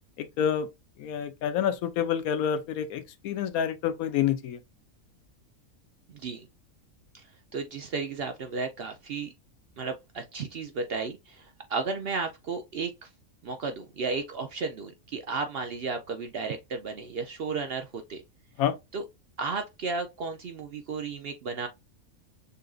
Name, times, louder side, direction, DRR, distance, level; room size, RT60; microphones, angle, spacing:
voice 1, 0.2-0.7 1.0-4.6 18.6-18.7, left 9 dB, 85° left, 1.1 m, -28 dB
voice 2, 6.1-6.5 7.1-7.2 7.5-9.3 9.8-13.1 13.4-18.2 18.9-19.0 19.4-21.7, right 4 dB, 60° right, 0.6 m, -33 dB
6.7 x 2.5 x 2.3 m
omnidirectional pair, 1.5 m